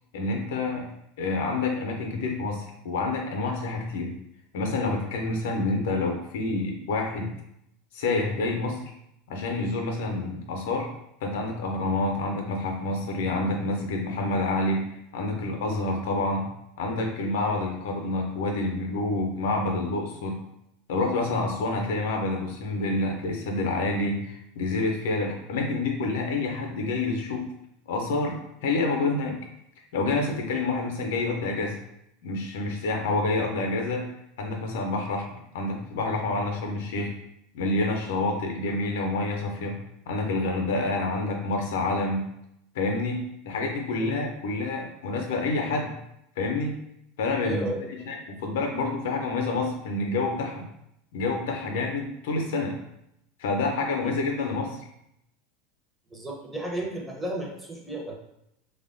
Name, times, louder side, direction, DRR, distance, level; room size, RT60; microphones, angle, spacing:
voice 1, 0.1-0.9 1.2-4.2 4.5-7.3 7.9-8.8 9.3-10.9 11.2-14.8 15.1-16.5 16.8-20.4 20.9-27.5 27.9-29.4 29.9-31.8 32.2-34.0 34.4-37.1 37.5-39.8 40.1-42.2 42.7-45.9 46.4-46.7 47.2-50.7 51.1-52.7 53.4-54.8, left 2 dB, 65° left, 2 dB, 0.5 m, -28 dB
voice 2, 47.4-47.9 53.9-54.1 56.1-58.2, right 1 dB, 10° right, -2 dB, 0.7 m, -34 dB
3.2 x 2.1 x 2.5 m, 0.79 s
hypercardioid pair, 80°, 0 cm